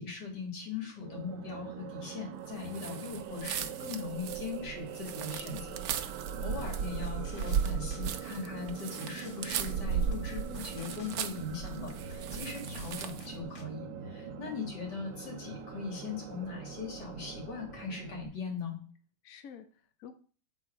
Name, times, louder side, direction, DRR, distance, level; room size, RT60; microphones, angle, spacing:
voice 1, 0.0-5.8 6.1-18.8, left 5 dB, 85° left, 0 dB, 2.5 m, -40 dB
sound 1, 1.0-18.3, right 7 dB, 90° right, 1.3 m, -44 dB
sound 2, 2.7-13.3, right 7 dB, 70° right, 1.0 m, -36 dB
sound 3, 6.6-13.6, left 3 dB, 45° left, 0.8 m, -55 dB
voice 2, 14.2-14.6 19.2-20.2, left 8 dB, 65° left, 8 dB, 1.0 m, -50 dB
7.6 x 4.0 x 4.9 m, 0.41 s
omnidirectional pair, 1.8 m